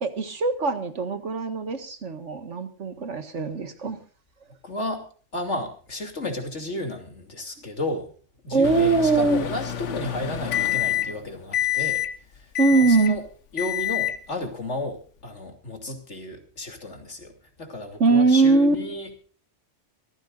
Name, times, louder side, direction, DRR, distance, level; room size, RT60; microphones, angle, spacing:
voice 1, 0.0-4.0 8.5-9.4 12.6-13.2 18.0-18.8, right 3 dB, 75° right, 9 dB, 2.0 m, -21 dB
voice 2, 4.6-5.0 5.3-8.1 8.4-12.0 12.7-13.2 13.5-17.3 17.6-19.2, left 1 dB, 75° left, 4 dB, 3.2 m, -32 dB
Microwave oven, 8.6-11.2 11.5-12.1 12.5-13.1 13.6-14.2, left 12 dB, 90° left, 1.3 m, -27 dB
24.5 x 15.0 x 2.5 m, 0.42 s
omnidirectional pair, 1.2 m